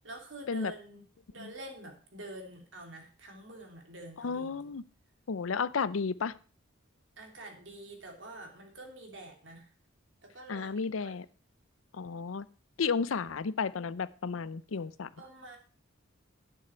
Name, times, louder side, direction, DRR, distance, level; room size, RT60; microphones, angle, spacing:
voice 1, 0.0-4.7 7.2-9.7 10.2-10.7 11.0-11.2 15.2-15.6, right 1 dB, 65° right, 2 dB, 3.1 m, -47 dB
voice 2, 4.2-4.8 5.3-6.3 10.5-11.3 11.9-12.5 12.8-15.1, left 5 dB, 90° left, 17 dB, 0.6 m, -32 dB
11.0 x 9.2 x 4.4 m, 0.38 s
head